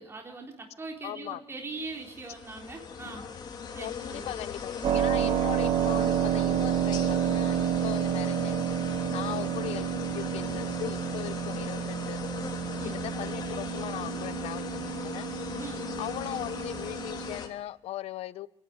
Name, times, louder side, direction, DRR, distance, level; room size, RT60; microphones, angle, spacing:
voice 1, 0.0-3.3 3.7-4.4 9.2-9.4 12.8-13.0 15.6-15.9, right 3 dB, 25° right, 3.8 m, -41 dB
voice 2, 1.0-1.4 3.8-8.7 9.1-9.9 10.1-12.2 12.8-15.3 16.0-18.5, left 13 dB, 85° left, 0.8 m, -39 dB
sound 1, 1.7-17.5, left 6 dB, 45° left, 3.2 m, -38 dB
Keyboard (musical), 4.8-17.4, right 10 dB, 55° right, 1.1 m, -30 dB
27.5 x 12.0 x 9.5 m
cardioid pair, 125°, 10 cm